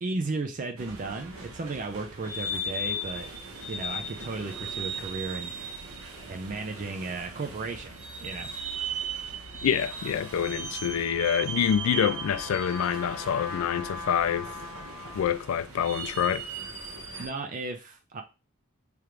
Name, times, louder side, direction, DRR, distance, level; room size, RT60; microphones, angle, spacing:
voice 1, 0.0-3.3 3.7-5.5 6.3-8.5 17.2-18.2, right 3 dB, 40° right, 0.5 m, -35 dB
sound 1, 0.8-17.3, right 2 dB, 80° right, 1.0 m, -38 dB
voice 2, 9.6-14.5 15.1-16.5, left 8 dB, 80° left, 0.3 m, -26 dB
Trumpet, 9.6-15.6, left 2 dB, 45° left, 1.1 m, -41 dB
3.4 x 2.5 x 4.4 m
head